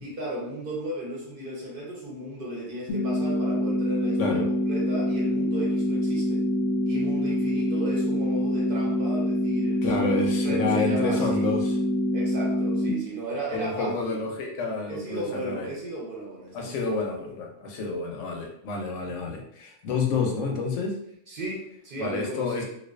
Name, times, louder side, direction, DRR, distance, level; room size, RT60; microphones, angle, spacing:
voice 1, 0.0-6.4 6.9-10.1 10.4-11.5 12.1-14.2 14.9-16.9 21.3-22.6, right 1 dB, 55° right, -3 dB, 0.7 m, -35 dB
sound 1, 2.9-12.9, equal, 60° left, 0.7 m, -25 dB
voice 2, 9.8-11.7 13.5-15.7 16.5-21.0 22.0-22.6, left 3 dB, 85° left, 1 dB, 0.9 m, -29 dB
2.4 x 2.2 x 2.3 m, 0.74 s
omnidirectional pair, 1.2 m